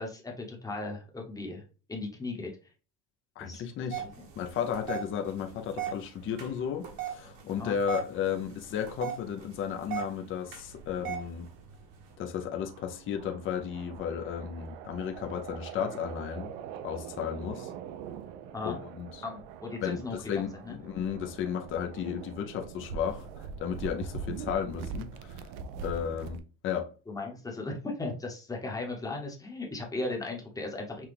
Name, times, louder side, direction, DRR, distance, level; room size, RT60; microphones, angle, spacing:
voice 1, 0.0-1.6 1.9-2.5 3.5-3.6 4.0-4.3 7.6-7.8 18.5-18.8 19.2-20.8 27.1-31.1, left 2 dB, 10° left, 0.9 m, -37 dB
voice 2, 3.4-4.0 4.4-11.5 12.2-16.6 16.8-17.7 18.6-19.1 19.8-25.5 25.8-26.9, left 8 dB, 30° left, 0.5 m, -34 dB
sound 1, 3.9-12.1, right 10 dB, 55° right, 1.3 m, -40 dB
sound 2, 10.7-26.4, right 6 dB, 80° right, 0.6 m, -43 dB
5.9 x 2.3 x 3.3 m
cardioid pair, 145°, 41 cm